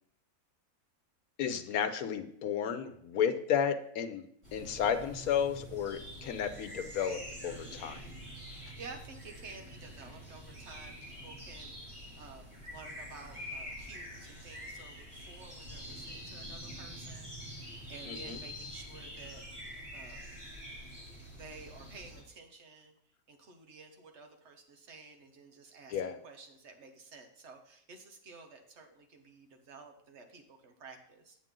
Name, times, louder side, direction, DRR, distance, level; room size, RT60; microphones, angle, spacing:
voice 1, 1.4-4.2 4.5-8.0 18.1-18.4 25.9-26.2, left 8 dB, 75° left, 9 dB, 1.2 m, -32 dB
sound 1, 4.4-22.2, equal, 20° right, 2.4 m, -46 dB
voice 2, 8.3-19.5 19.9-20.2 21.3-31.4, right 4 dB, 50° right, 4 dB, 1.4 m, -52 dB
8.9 x 7.5 x 3.7 m, 0.71 s
omnidirectional pair, 1.6 m